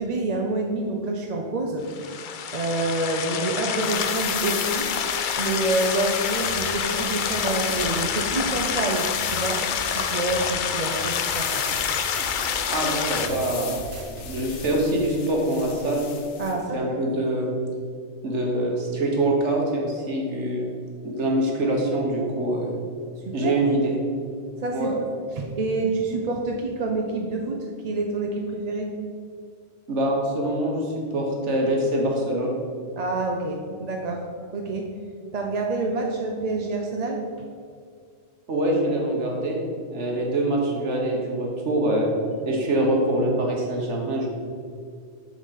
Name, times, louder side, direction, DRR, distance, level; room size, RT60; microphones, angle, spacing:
voice 1, 0.0-9.6 9.9-11.6 16.4-16.8 23.3-23.6 24.6-24.9 25.4-28.9 33.0-34.2 34.5-34.9 35.3-37.2, right 2 dB, 45° right, 1 dB, 0.6 m, -27 dB
sound 1, 1.9-13.3, left 7 dB, 60° left, 0.6 m, -27 dB
sound 2, 3.7-16.6, left 7 dB, 85° left, 1.0 m, -37 dB
sound 3, 6.4-14.4, right 2 dB, 65° right, 1.2 m, -41 dB
voice 2, 12.7-13.8 14.2-16.0 16.7-17.5 18.2-20.7 21.0-22.7 23.3-23.9 24.7-24.9 29.9-32.5 38.5-39.6 39.9-42.1 42.4-44.3, right 1 dB, 85° right, -1 dB, 1.6 m, -24 dB
7.1 x 4.1 x 6.5 m, 2.2 s
omnidirectional pair, 1.2 m